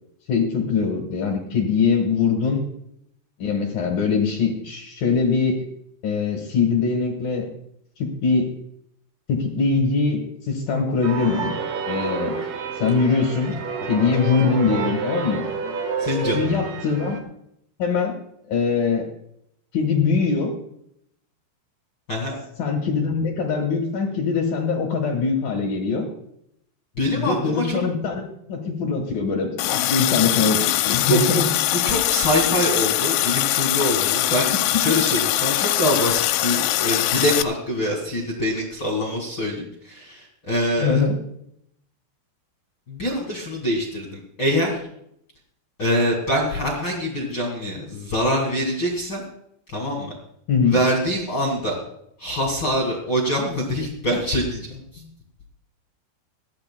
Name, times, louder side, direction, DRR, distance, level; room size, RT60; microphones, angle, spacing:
voice 1, 0.3-2.6 3.4-5.6 6.0-7.5 8.0-8.5 9.3-11.5 11.9-12.4 12.8-13.6 13.9-15.4 16.3-17.2 17.8-18.2 18.5-19.1 19.7-20.5 22.6-26.1 27.2-28.2 28.5-31.5 34.9-35.0 40.8-41.1 50.5-50.8, left 5 dB, 65° left, 2 dB, 2.3 m, -22 dB
sound 1, 11.0-17.2, right 5 dB, 70° right, 2.0 m, -29 dB
voice 2, 16.0-16.6 22.1-22.4 27.0-27.8 31.0-31.4 31.7-41.0 42.9-44.8 45.8-49.2 49.7-50.1 50.6-51.8 52.2-55.0, equal, 45° left, -1 dB, 1.6 m, -24 dB
Water tap faucet, 29.6-37.4, left 15 dB, 85° left, 3.1 m, -22 dB
21.5 x 14.5 x 2.3 m, 0.74 s
omnidirectional pair, 6.0 m